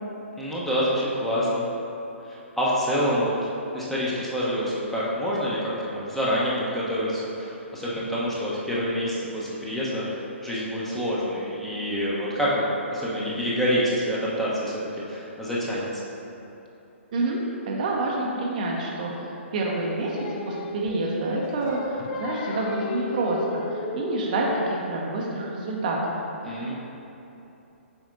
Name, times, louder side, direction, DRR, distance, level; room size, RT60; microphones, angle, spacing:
voice 1, 0.4-1.7 2.2-12.6 12.9-15.9 26.4-26.7, equal, 5° left, -8 dB, 0.9 m, -27 dB
voice 2, 17.1-26.1 26.5-26.7, right 2 dB, 40° right, -2 dB, 0.7 m, -28 dB
Singing, 19.6-24.9, left 3 dB, 35° left, 0.4 m, -34 dB
7.2 x 5.1 x 2.6 m, 2.9 s
figure-of-eight pair, 125°, 7 cm